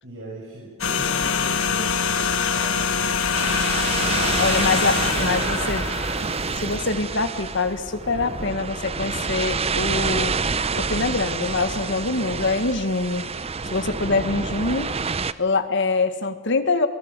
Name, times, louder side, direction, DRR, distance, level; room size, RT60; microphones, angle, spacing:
voice 1, 0.0-3.2, right 1 dB, 70° right, -4 dB, 6.3 m, -38 dB
sound 1, 0.8-7.1 7.4-7.6, left 6 dB, 80° left, 1.8 m, -24 dB
sound 2, 1.1-14.1, equal, 5° left, 3.3 m, -44 dB
sound 3, 3.3-15.3, right 5 dB, 30° right, 0.7 m, -28 dB
voice 2, 4.1-5.9 6.2-10.3 10.7-15.0 15.4-16.9, left 3 dB, 60° left, 9 dB, 1.9 m, -25 dB
26.0 x 20.0 x 8.3 m, 1.3 s
head